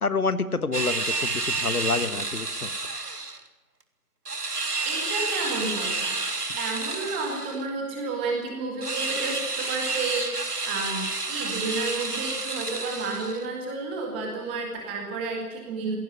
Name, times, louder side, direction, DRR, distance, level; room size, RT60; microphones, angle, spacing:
voice 1, 0.0-2.7, left 4 dB, 70° left, 13 dB, 1.5 m, -28 dB
sound 1, 0.7-3.4 4.3-7.7 8.8-13.5, right 3 dB, 90° right, 2.4 m, -30 dB
voice 2, 4.8-6.2 6.6-16.0, right 3 dB, 10° right, 1 dB, 1.6 m, -31 dB
17.0 x 16.5 x 9.7 m, 1.1 s
figure-of-eight pair, 160°, 46 cm